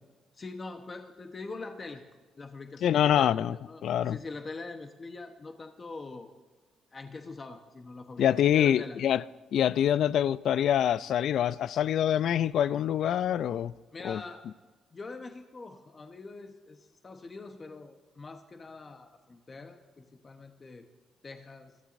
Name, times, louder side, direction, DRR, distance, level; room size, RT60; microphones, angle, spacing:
voice 1, 0.3-2.0 2.4-6.3 6.9-9.0 13.9-14.4 14.9-20.9 21.2-21.7, left 3 dB, 35° left, 1.0 m, -43 dB
voice 2, 2.8-3.6 3.8-4.2 8.2-9.2 9.5-13.7 14.0-14.2, left 10 dB, 70° left, 0.4 m, -25 dB
23.5 x 14.0 x 2.6 m
cardioid pair, 90°, 0 cm